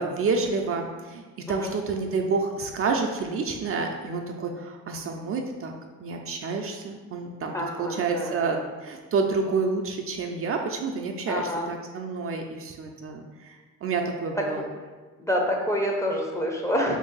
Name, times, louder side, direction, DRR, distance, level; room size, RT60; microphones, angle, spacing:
voice 1, 0.0-5.7 6.0-14.6, right 4 dB, 50° right, 3 dB, 0.4 m, -29 dB
voice 2, 7.5-8.5 11.3-11.7 14.6-14.7 15.2-17.0, equal, 10° left, 0 dB, 0.5 m, -27 dB
3.1 x 2.7 x 3.9 m, 1.3 s
cardioid pair, 90°, 30 cm